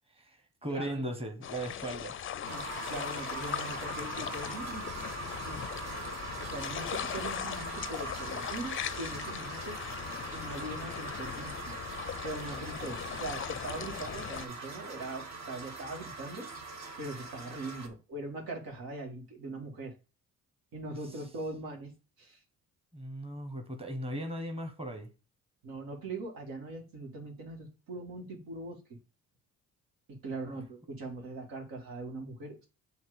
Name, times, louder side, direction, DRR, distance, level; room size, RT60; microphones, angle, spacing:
voice 1, 0.2-2.1 22.9-25.1 30.5-30.6, right 1 dB, 15° right, 1.4 m, -37 dB
voice 2, 0.7-1.0 2.4-2.6 2.9-4.9 5.5-5.6 6.4-9.8 10.3-11.8 12.2-16.5 17.0-19.9 20.7-21.9 22.2-22.4 25.6-29.0 30.1-32.7, right 2 dB, 80° right, 1.9 m, -41 dB
sound 1, 1.4-14.5, left 10 dB, 40° left, 0.4 m, -39 dB
sound 2, 2.5-17.9, right 3 dB, 50° right, 1.4 m, -42 dB
7.2 x 2.9 x 4.9 m
cardioid pair, 80°, 34 cm